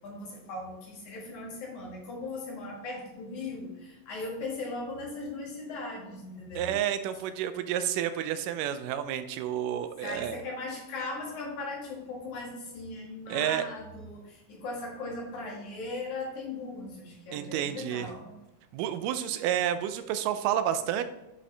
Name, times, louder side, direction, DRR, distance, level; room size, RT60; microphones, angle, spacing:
voice 1, 0.0-6.7 10.0-18.4, left 3 dB, 65° left, -2 dB, 3.1 m, -38 dB
voice 2, 6.6-10.4 13.3-13.6 17.3-18.1 18.7-21.0, right 10 dB, 80° right, 11 dB, 2.1 m, -30 dB
9.7 x 5.5 x 3.3 m, 0.94 s
omnidirectional pair, 3.8 m